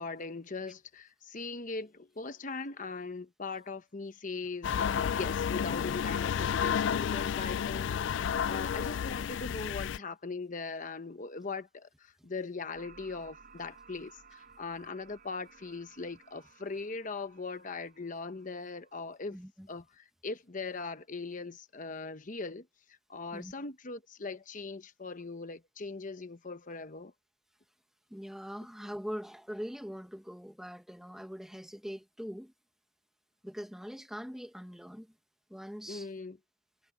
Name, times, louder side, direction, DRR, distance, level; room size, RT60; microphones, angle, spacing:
voice 1, 0.0-19.4 19.7-22.7 23.1-27.1 35.9-36.4, left 4 dB, 40° left, 1.0 m, -40 dB
sound 1, 4.6-10.0, left 8 dB, 65° left, 0.3 m, -31 dB
sound 2, 12.7-19.3, right 5 dB, 50° right, 5.2 m, -58 dB
voice 2, 19.3-19.7 23.3-23.5 28.1-32.5 33.4-35.1 35.5-36.1, equal, ahead, 1.2 m, -42 dB
head